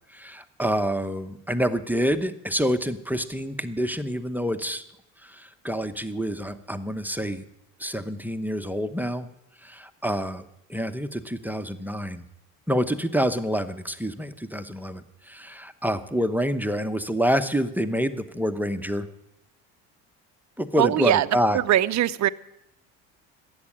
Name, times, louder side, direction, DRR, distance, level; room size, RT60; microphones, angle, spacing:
voice 1, 0.1-4.8 5.2-7.4 7.8-9.3 9.6-10.4 10.7-12.3 12.7-19.1 20.6-21.6, equal, 5° right, 9 dB, 0.9 m, -27 dB
voice 2, 20.8-21.2 21.7-22.3, right 13 dB, 45° right, 13 dB, 0.7 m, -21 dB
13.0 x 8.8 x 10.0 m, 0.81 s
supercardioid pair, 70°, 40 cm